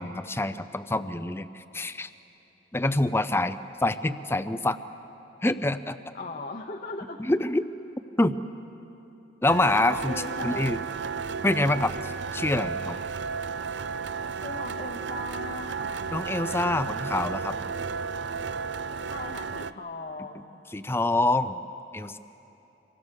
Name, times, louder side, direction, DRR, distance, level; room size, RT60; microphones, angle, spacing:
voice 1, 0.0-2.1 2.7-4.8 5.4-6.0 7.2-7.6 8.2-8.4 9.4-10.8 11.4-13.0 16.1-17.6 20.7-21.6 21.9-22.2, left 2 dB, 15° left, 12 dB, 0.6 m, -26 dB
voice 2, 6.1-7.2 10.0-10.7 14.3-16.1 19.1-20.6, left 3 dB, 45° left, 2 dB, 1.0 m, -39 dB
sound 1, 9.5-19.7, right 5 dB, 70° right, 0.6 m, -33 dB
27.0 x 23.5 x 6.6 m, 2.9 s
head